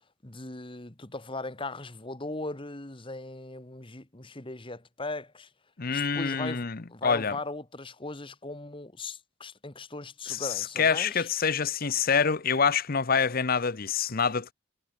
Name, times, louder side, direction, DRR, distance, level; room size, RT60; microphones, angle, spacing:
voice 1, 0.2-5.5 5.9-11.3, left 2 dB, 25° left, 1.5 m, -39 dB
voice 2, 5.8-7.4 10.3-14.5, left 6 dB, 45° left, 0.8 m, -26 dB
head